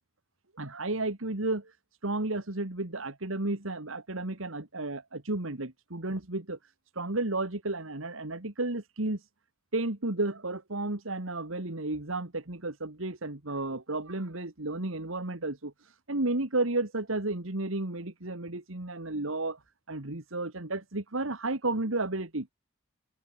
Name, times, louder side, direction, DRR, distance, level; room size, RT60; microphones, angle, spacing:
voice 1, 0.6-1.7 2.0-6.6 7.0-9.2 9.7-15.7 16.1-19.6 19.9-22.5, right 2 dB, 80° right, 2.3 m, -32 dB
head